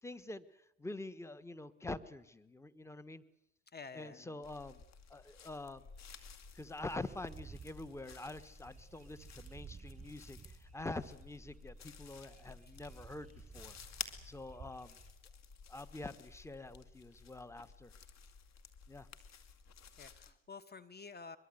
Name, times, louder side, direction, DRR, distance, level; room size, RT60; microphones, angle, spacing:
voice 1, 0.0-3.2 3.9-4.8 5.1-5.8 6.5-13.8 14.2-15.0 15.7-17.9 18.9-19.1, left 2 dB, 5° left, 15 dB, 1.4 m, -46 dB
voice 2, 3.7-4.2 20.0-21.4, left 4 dB, 25° left, 14 dB, 1.3 m, -50 dB
sound 1, 4.4-20.3, left 6 dB, 45° left, 2.7 m, -53 dB
sound 2, 7.1-15.1, right 6 dB, 20° right, 3.2 m, -56 dB
23.5 x 23.0 x 8.0 m, 0.79 s
hypercardioid pair, 60°, 37 cm